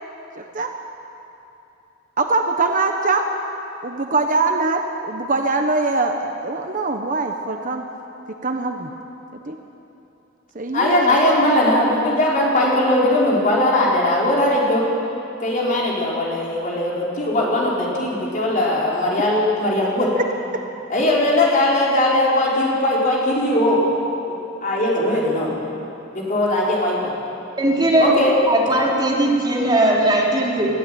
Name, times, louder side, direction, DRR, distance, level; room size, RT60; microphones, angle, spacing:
voice 1, 0.3-0.7 2.2-3.2 3.8-7.8 8.4-8.9 9.3-9.6 10.5-11.2, right 3 dB, 40° right, 4 dB, 1.1 m, -22 dB
voice 2, 10.7-14.9 15.4-20.1 20.9-23.8 24.3-25.5 26.1-27.1 28.0-28.3, left 1 dB, 40° left, -5 dB, 4.8 m, -19 dB
voice 3, 27.6-28.1 28.5-30.8, right 1 dB, 20° right, -4 dB, 3.8 m, -18 dB
21.0 x 15.0 x 9.3 m, 2.9 s
head